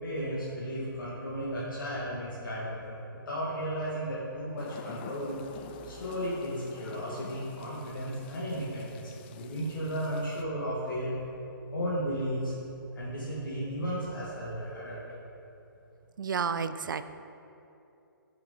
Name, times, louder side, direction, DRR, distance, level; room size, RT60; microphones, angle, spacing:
voice 1, 0.0-5.4 5.9-11.1 11.7-12.5 12.9-15.0, equal, 65° left, -7 dB, 2.3 m, -34 dB
sound 1, 4.6-10.4, left 8 dB, 25° left, 0.4 m, -48 dB
voice 2, 16.2-17.0, right 6 dB, 65° right, 12 dB, 0.5 m, -31 dB
8.4 x 7.6 x 5.5 m, 2.8 s
figure-of-eight pair, 135°, 12 cm